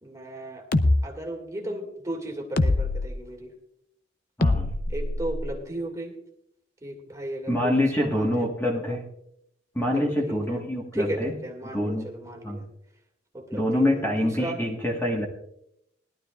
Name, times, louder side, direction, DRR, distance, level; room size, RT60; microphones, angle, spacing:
voice 1, 0.0-0.7 1.0-3.5 4.9-6.2 6.8-8.5 9.9-10.6 10.9-12.7 13.3-14.6, right 1 dB, 20° right, 2 dB, 2.1 m, -35 dB
sound 1, 0.7-1.0 2.6-3.1 4.4-5.6, left 2 dB, 55° left, 0.7 m, -23 dB
voice 2, 4.4-4.7 7.5-9.0 9.7-11.3 11.7-12.1 12.4-12.6 13.5-15.3, left 1 dB, 10° left, -1 dB, 1.5 m, -25 dB
20.0 x 12.0 x 2.4 m, 0.75 s
head